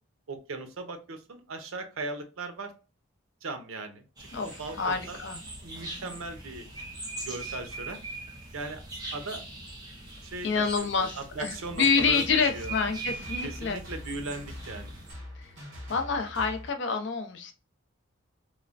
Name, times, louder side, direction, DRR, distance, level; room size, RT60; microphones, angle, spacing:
voice 1, 0.3-2.7 3.4-5.2 5.6-6.6 7.2-8.0 8.5-8.8 9.1-9.4 10.2-12.7 13.4-14.9, right 3 dB, 80° right, 7 dB, 0.6 m, -38 dB
sound 1, 4.2-15.1, right 2 dB, 20° right, 0.6 m, -41 dB
voice 2, 4.3-5.4 10.4-13.8 15.4-15.5 15.9-17.5, left 5 dB, 55° left, 6 dB, 0.5 m, -28 dB
sound 2, 11.7-16.7, left 1 dB, 60° right, 1.4 m, -43 dB
3.1 x 2.1 x 2.4 m, 0.32 s
head